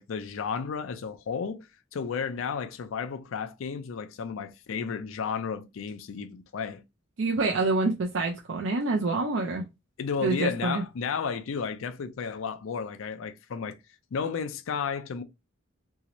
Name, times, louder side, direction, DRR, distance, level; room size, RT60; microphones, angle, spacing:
voice 1, 0.0-1.7 1.9-6.8 10.0-13.8 14.1-15.2, left 6 dB, 80° left, 0.4 m, -33 dB
voice 2, 7.2-9.6 10.2-10.8, right 3 dB, 60° right, 0.5 m, -26 dB
3.0 x 2.8 x 2.9 m
head